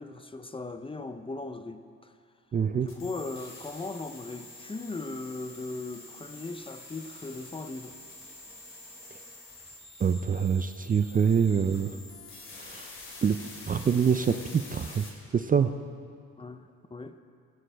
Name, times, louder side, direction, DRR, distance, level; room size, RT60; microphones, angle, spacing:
voice 1, 0.0-2.1 2.7-8.0 16.4-17.2, left 3 dB, 20° left, 9 dB, 0.6 m, -38 dB
voice 2, 2.5-2.9 10.0-12.0 12.6-12.9 13.2-13.4 13.7-15.1 15.3-15.7, right 7 dB, 30° right, 9 dB, 0.4 m, -25 dB
sound 1, 2.9-15.1, left 2 dB, 40° left, 2.7 m, -47 dB
16.0 x 13.5 x 3.4 m, 2.3 s
cardioid pair, 90°, 30 cm